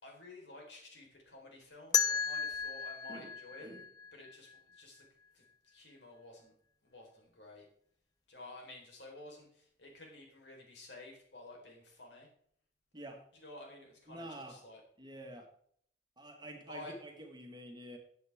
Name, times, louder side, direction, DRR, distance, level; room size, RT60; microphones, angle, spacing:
voice 1, 0.0-3.7 4.1-5.0 5.3-6.5 6.8-7.7 8.3-12.3 13.4-14.8 16.7-16.9, left 2 dB, 70° left, 0 dB, 4.1 m, -52 dB
sound 1, 1.9-4.8, left 6 dB, 20° left, 0.6 m, -34 dB
voice 2, 14.1-14.6 15.0-15.5 16.2-18.0, right 1 dB, 25° right, 3 dB, 1.6 m, -48 dB
13.5 x 8.5 x 3.5 m, 0.63 s
head